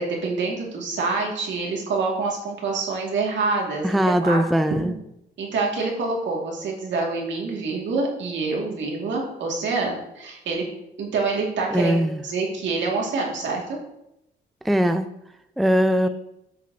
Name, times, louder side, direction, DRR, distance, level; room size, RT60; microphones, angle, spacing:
voice 1, 0.0-4.4 4.8-4.9 5.4-10.6 11.0-12.0 12.2-13.8, right 3 dB, 70° right, -1 dB, 2.3 m, -26 dB
voice 2, 3.8-4.9 11.7-12.2 14.6-15.1 15.6-16.1, equal, ahead, 9 dB, 0.4 m, -20 dB
11.0 x 6.3 x 2.8 m, 0.83 s
cardioid pair, 90°, 20 cm